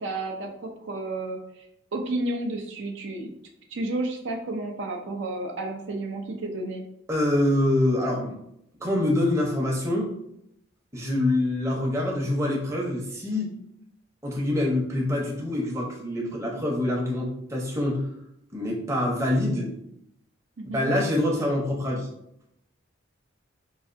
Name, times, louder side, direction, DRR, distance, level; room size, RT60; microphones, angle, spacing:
voice 1, 0.0-1.7 1.9-3.3 3.7-6.8 20.6-20.9, right 2 dB, 65° right, 2 dB, 0.5 m, -31 dB
voice 2, 7.1-8.4 8.8-10.1 10.9-13.6 14.2-18.0 18.5-19.7 20.7-22.1, left 1 dB, 15° right, -3 dB, 0.7 m, -25 dB
4.8 x 2.4 x 2.5 m, 0.76 s
head